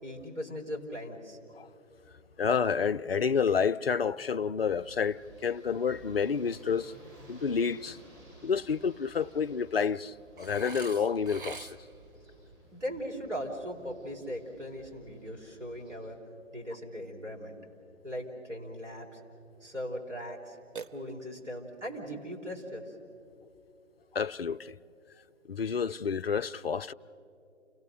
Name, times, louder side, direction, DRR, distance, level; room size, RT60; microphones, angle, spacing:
voice 1, 0.0-1.4 12.7-16.2 16.5-17.6 18.0-19.2 19.6-20.6 20.9-22.9, equal, 70° right, 4.4 m, -39 dB
voice 2, 2.4-6.9 7.3-8.0 8.4-11.8 24.1-24.8 25.5-26.9, left 6 dB, 50° left, 0.5 m, -29 dB
sound 1, 4.7-16.0, right 2 dB, 20° right, 6.9 m, -55 dB
Burping eructation, 10.4-12.1 20.8-21.5, right 4 dB, 45° right, 0.6 m, -44 dB
29.0 x 17.5 x 6.6 m
figure-of-eight pair, 145°, 37 cm